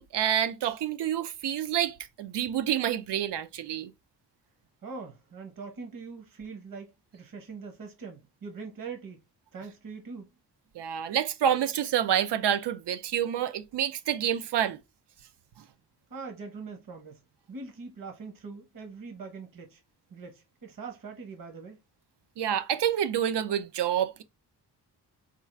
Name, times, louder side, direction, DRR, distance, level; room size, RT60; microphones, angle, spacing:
voice 1, 0.0-3.9 10.7-14.8 22.4-24.2, right 10 dB, 90° right, 0.6 m, -28 dB
voice 2, 4.8-9.2 9.5-10.3 16.1-17.2 17.5-19.8 20.1-21.8, right 4 dB, 55° right, 1.1 m, -42 dB
4.5 x 2.4 x 4.4 m
wide cardioid pair, 170°, 40 cm